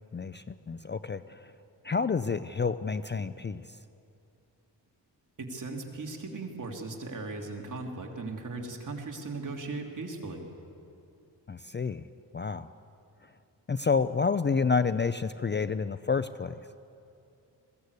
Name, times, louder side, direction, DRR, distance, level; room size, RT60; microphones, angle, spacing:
voice 1, 0.1-1.4 1.8-3.6 11.5-12.1 12.3-12.7 13.7-16.6, left 5 dB, 25° left, 13 dB, 0.5 m, -29 dB
voice 2, 5.4-10.4, right 3 dB, 45° right, 1 dB, 3.2 m, -38 dB
21.5 x 16.5 x 8.3 m, 2.6 s
cardioid pair, 70°, 42 cm